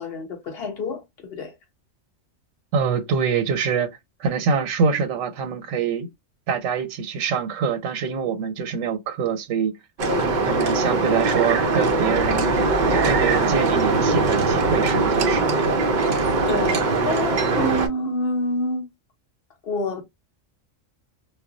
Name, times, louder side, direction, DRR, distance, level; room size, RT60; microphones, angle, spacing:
voice 1, 0.0-1.5 10.0-10.3 16.4-18.9 19.6-20.0, left 1 dB, 55° left, 1.0 m, -27 dB
voice 2, 2.7-3.9 4.2-6.1 6.5-9.7 10.4-12.5 12.9-15.7, right 6 dB, 85° right, 1.0 m, -25 dB
sound 1, 10.0-17.9, right 3 dB, 60° right, 0.5 m, -21 dB
2.2 x 2.1 x 3.7 m
omnidirectional pair, 1.3 m